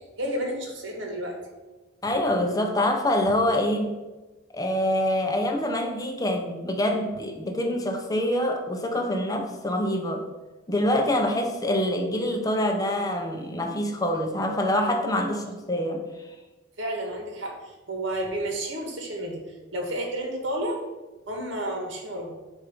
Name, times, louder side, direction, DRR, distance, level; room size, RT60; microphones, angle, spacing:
voice 1, 0.2-1.4 16.8-19.4 19.7-20.8 21.3-22.3, right 1 dB, 65° right, 1 dB, 1.4 m, -31 dB
voice 2, 2.0-4.0 4.5-10.3 10.7-16.0, left 1 dB, 20° left, 3 dB, 0.6 m, -25 dB
7.5 x 2.6 x 5.3 m, 1.2 s
head